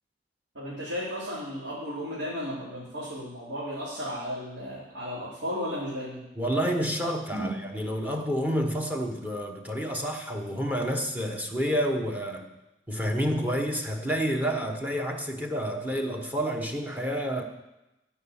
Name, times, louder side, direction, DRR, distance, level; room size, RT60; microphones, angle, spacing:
voice 1, 0.5-6.2 7.3-7.5, equal, 80° right, -9 dB, 3.4 m, -34 dB
voice 2, 6.4-12.5 12.9-17.4, equal, 10° right, 4 dB, 1.0 m, -29 dB
14.0 x 5.7 x 7.1 m, 0.97 s
head